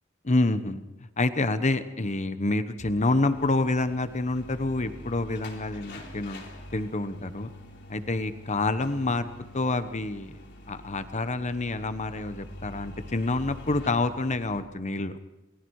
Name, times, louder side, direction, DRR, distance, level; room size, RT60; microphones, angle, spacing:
voice 1, 0.2-0.8 1.2-6.4 6.7-7.5 7.9-9.3 9.5-10.3 10.7-15.1, left 2 dB, 35° left, 11 dB, 1.1 m, -27 dB
sound 1, 3.2-14.6, left 1 dB, 60° left, 3.4 m, -45 dB
28.0 x 20.5 x 4.9 m, 1.1 s
head